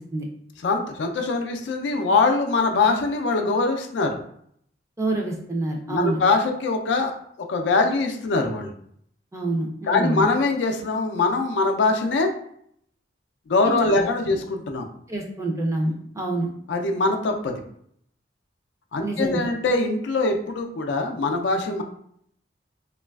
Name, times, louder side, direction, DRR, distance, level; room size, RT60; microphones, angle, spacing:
voice 1, 0.6-4.2 5.9-7.2 7.5-8.7 9.9-12.3 13.5-14.9 16.7-17.6 18.9-21.8, left 3 dB, 75° left, 5 dB, 0.4 m, -23 dB
voice 2, 5.0-6.2 9.3-10.2 13.6-14.4 15.1-16.5 19.0-19.5, right 2 dB, 15° right, 0 dB, 0.4 m, -27 dB
3.0 x 2.3 x 2.3 m, 0.67 s
head